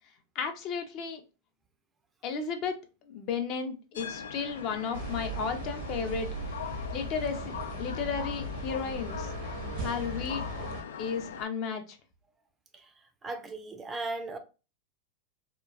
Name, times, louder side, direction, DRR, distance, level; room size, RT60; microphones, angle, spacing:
voice 1, 0.3-1.2 2.2-6.3 6.9-9.3 9.8-10.4 11.0-11.8, left 6 dB, 45° left, 0.6 m, -34 dB
sound 1, 3.9-11.5, left 7 dB, 85° left, 0.3 m, -41 dB
sound 2, 4.9-10.8, right 1 dB, 60° right, 0.7 m, -38 dB
voice 2, 13.2-14.4, right 2 dB, 20° right, 0.4 m, -37 dB
3.0 x 2.3 x 2.3 m
hypercardioid pair, 130°, 0 cm